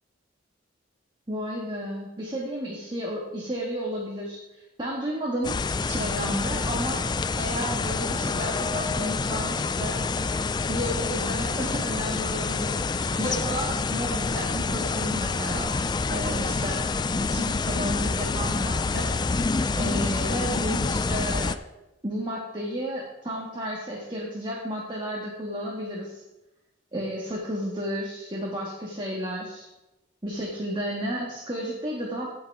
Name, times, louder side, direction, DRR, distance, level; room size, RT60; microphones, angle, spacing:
voice 1, 1.3-5.6 5.8-7.1 7.4-10.4 10.7-15.7 16.1-16.8 17.3-19.1 19.8-21.5 22.0-26.2 26.9-29.6 30.2-32.3, equal, 25° right, -3 dB, 1.9 m, -32 dB
sound 1, 5.4-21.6, left 4 dB, 20° left, 0.3 m, -27 dB
16.5 x 6.0 x 4.8 m, 0.95 s
head